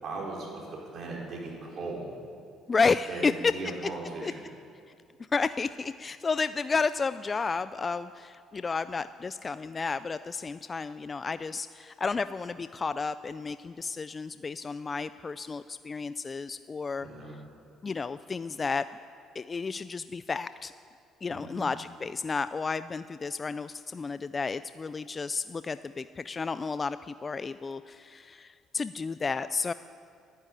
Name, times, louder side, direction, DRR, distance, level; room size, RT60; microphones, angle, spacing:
voice 1, 0.0-2.1 3.1-4.5 17.0-17.3 21.3-21.7, right 3 dB, 55° right, -3 dB, 5.1 m, -38 dB
voice 2, 2.7-3.5 4.2-4.3 5.3-17.1 17.8-18.9 19.3-20.7 21.2-29.7, left 4 dB, 30° left, 13 dB, 0.4 m, -31 dB
12.0 x 11.5 x 9.7 m, 2.4 s
cardioid pair, 90°, 0 cm